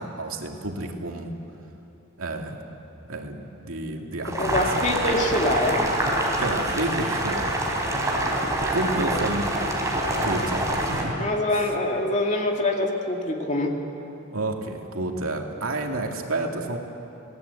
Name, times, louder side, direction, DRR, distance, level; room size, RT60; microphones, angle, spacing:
voice 1, 0.0-1.3 2.2-2.6 3.1-4.9 6.4-7.5 8.0-8.2 8.7-9.5 10.2-11.3 11.5-11.7 14.3-16.8, right 2 dB, 80° right, 2 dB, 2.5 m, -30 dB
Boiling, 4.2-11.0, right 1 dB, 15° right, 3.7 m, -26 dB
voice 2, 4.3-5.9 11.2-13.8, left 1 dB, 35° left, 1 dB, 2.5 m, -24 dB
28.5 x 18.5 x 8.4 m, 2.9 s
head